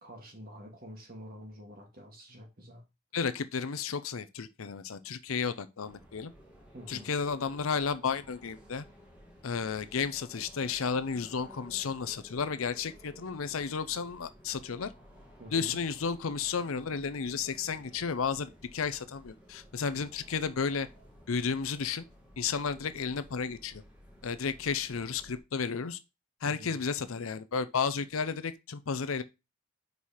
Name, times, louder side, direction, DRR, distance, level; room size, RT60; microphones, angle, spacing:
voice 1, 0.0-2.8 6.7-7.1 15.4-15.8 26.4-26.7, equal, 40° right, 2.1 m, -47 dB
voice 2, 3.1-6.3 6.9-8.9 9.4-14.9 15.5-20.9 21.3-22.0 22.4-23.8 24.2-26.0 26.4-29.2, left 5 dB, 75° left, 0.6 m, -33 dB
sound 1, 5.8-25.4, equal, 5° right, 1.8 m, -55 dB
5.3 x 4.8 x 4.2 m
head